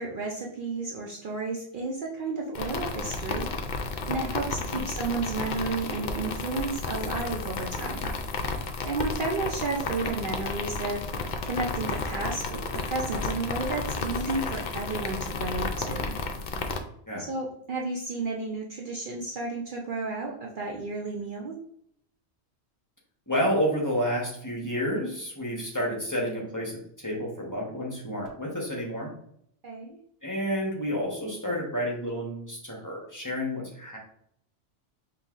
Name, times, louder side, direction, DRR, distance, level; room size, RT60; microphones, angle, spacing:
voice 1, 0.0-3.5 4.1-8.1 8.9-11.0 11.4-16.1 17.2-21.6 29.6-30.0, right 3 dB, 55° right, -1 dB, 0.6 m, -32 dB
sound 1, 2.6-16.8, left 4 dB, 60° left, 0.5 m, -32 dB
voice 2, 23.3-29.1 30.2-34.0, equal, 20° left, -3 dB, 0.9 m, -30 dB
5.3 x 3.0 x 2.4 m, 0.68 s
omnidirectional pair, 1.2 m